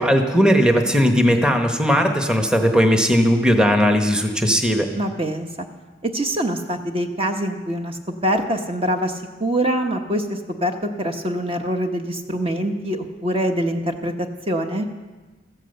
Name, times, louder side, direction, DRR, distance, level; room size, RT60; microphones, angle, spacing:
voice 1, 0.0-4.9, equal, 5° right, 4 dB, 1.0 m, -17 dB
voice 2, 4.9-5.5 6.0-14.1 14.5-14.9, right 1 dB, 30° right, 4 dB, 1.0 m, -24 dB
14.5 x 10.5 x 7.9 m, 1.2 s
head